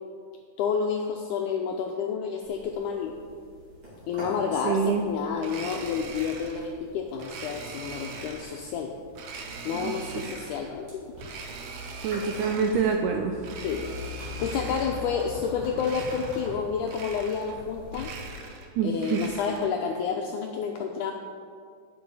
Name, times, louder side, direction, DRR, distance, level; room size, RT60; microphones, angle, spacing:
voice 1, 0.6-3.1 4.1-8.9 9.7-11.1 12.0-12.2 13.6-18.1 18.8-21.1, left 6 dB, 85° left, 2 dB, 1.8 m, -30 dB
sound 1, 2.4-18.2, left 2 dB, 35° right, 3.3 m, -44 dB
voice 2, 4.7-5.0 9.7-9.9 10.2-10.3 12.0-13.4 18.8-19.3, right 6 dB, 85° right, 3 dB, 1.8 m, -26 dB
Domestic sounds home sounds, 5.4-6.7 7.2-8.6 9.1-10.7 11.2-13.0 13.4-15.1 15.7-16.6 16.8-17.6 17.9-19.8, right 4 dB, 70° right, 1.9 m, -41 dB
11.0 x 8.0 x 4.8 m, 2.1 s
omnidirectional pair, 4.2 m